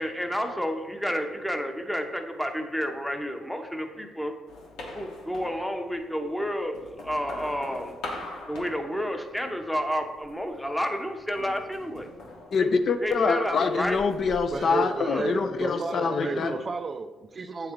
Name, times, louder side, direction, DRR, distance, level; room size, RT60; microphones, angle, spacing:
voice 1, 0.0-4.3 4.9-7.9 8.5-12.1 13.0-14.0 15.1-15.3 16.2-16.5, equal, 5° left, 4 dB, 0.7 m, -30 dB
sound 1, 4.5-6.1 6.6-9.6 9.9-10.5 11.4-13.3 13.6-15.7, left 2 dB, 90° left, 1.1 m, -42 dB
voice 2, 12.5-16.5, left 5 dB, 55° left, 8 dB, 0.4 m, -25 dB
voice 3, 14.5-17.7, right 3 dB, 40° right, 9 dB, 0.4 m, -32 dB
8.5 x 3.3 x 3.6 m, 1.2 s
cardioid pair, 90°, 0 cm